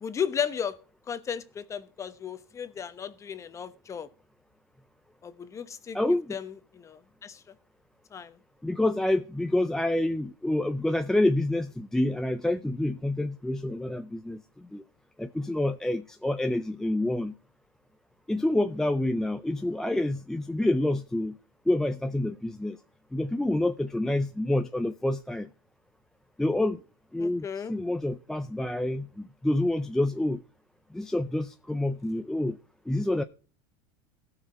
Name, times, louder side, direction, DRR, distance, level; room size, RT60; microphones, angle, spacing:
voice 1, 0.0-0.8 1.1-4.1 5.2-6.0 6.3-7.4 8.1-8.4 27.2-27.7, left 7 dB, 20° left, 1.0 m, -34 dB
voice 2, 5.9-6.4 8.6-14.4 14.7-14.8 15.2-17.4 18.3-21.4 21.7-22.8 23.1-25.5 26.4-26.8 27.1-30.4 30.9-32.6 32.9-33.2, left 1 dB, 5° left, 0.4 m, -27 dB
17.5 x 5.9 x 4.2 m
supercardioid pair, 135°, 14 cm